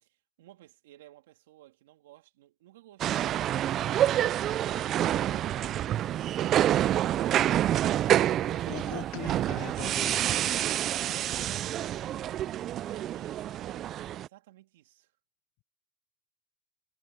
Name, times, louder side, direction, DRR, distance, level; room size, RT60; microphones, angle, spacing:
voice 1, 0.0-6.0 6.7-9.4 10.5-12.2 12.8-15.1, right 16 dB, 80° right, 3.0 m, -55 dB
sound 1, 3.0-14.3, right 12 dB, 35° right, 0.3 m, -28 dB
Frying (food), 5.9-10.9, left 11 dB, 35° left, 6.1 m, -69 dB
voice 2, 8.6-10.3, left 24 dB, 55° left, 0.5 m, -41 dB
supercardioid pair, 130°, 0 cm